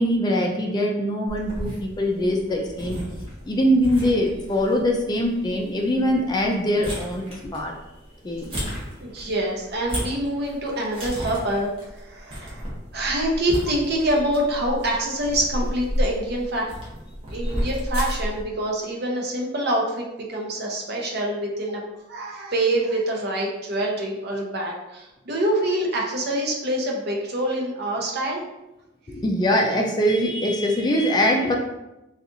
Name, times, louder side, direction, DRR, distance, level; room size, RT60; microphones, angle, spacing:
voice 1, 0.0-3.0 3.5-7.8 8.2-8.5 29.1-31.6, equal, 20° left, 1 dB, 0.3 m, -22 dB
sound 1, 1.3-18.4, equal, 30° right, 1.0 m, -33 dB
voice 2, 9.0-12.7 12.9-16.7 17.3-21.8 22.1-28.5, right 1 dB, 55° right, -1 dB, 0.7 m, -26 dB
4.0 x 2.4 x 2.6 m, 0.95 s
head